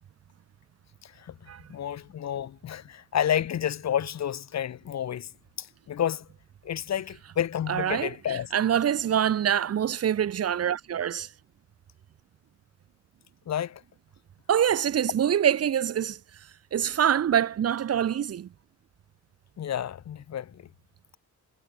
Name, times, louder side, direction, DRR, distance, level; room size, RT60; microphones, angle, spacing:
voice 1, 1.0-5.3 5.6-6.3 6.6-8.5 13.5-13.8 19.6-20.7, left 10 dB, 55° left, 2.3 m, -30 dB
voice 2, 7.7-11.3 14.5-16.2 16.7-18.5, right 9 dB, 50° right, 1.4 m, -25 dB
cardioid pair, 100°, 33 cm